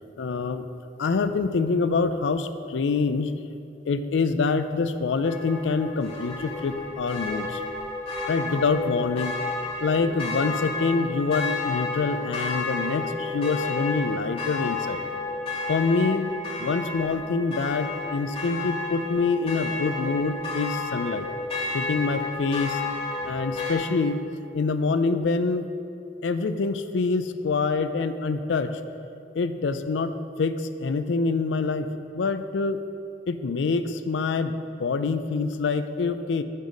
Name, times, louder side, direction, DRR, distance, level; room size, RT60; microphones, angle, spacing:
voice 1, 0.2-0.6 1.0-3.3 3.9-7.6 8.3-9.3 9.8-15.0 15.7-16.3 16.6-21.3 21.7-22.8 23.2-24.2 24.5-25.7 26.2-28.8 29.3-31.9 32.1-32.8 33.3-36.4, left 4 dB, 80° left, 11 dB, 0.4 m, -26 dB
sound 1, 5.2-23.7, left 3 dB, 35° left, 1.6 m, -31 dB
7.0 x 6.5 x 5.1 m, 2.6 s
head